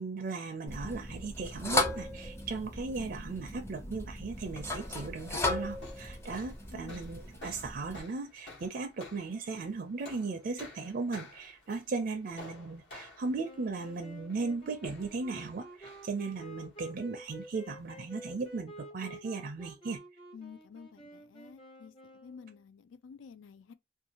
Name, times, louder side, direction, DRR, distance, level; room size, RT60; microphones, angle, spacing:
voice 1, 0.0-20.0, right 4 dB, 50° right, 0.4 m, -37 dB
sound 1, 0.7-8.0, left 2 dB, 15° left, 0.5 m, -36 dB
sound 2, 4.3-18.6, left 2 dB, 65° left, 1.2 m, -53 dB
voice 2, 6.7-7.0 20.3-23.7, left 6 dB, 80° left, 0.4 m, -51 dB
sound 3, 13.4-22.6, right 1 dB, 30° left, 0.9 m, -50 dB
2.6 x 2.3 x 2.8 m
head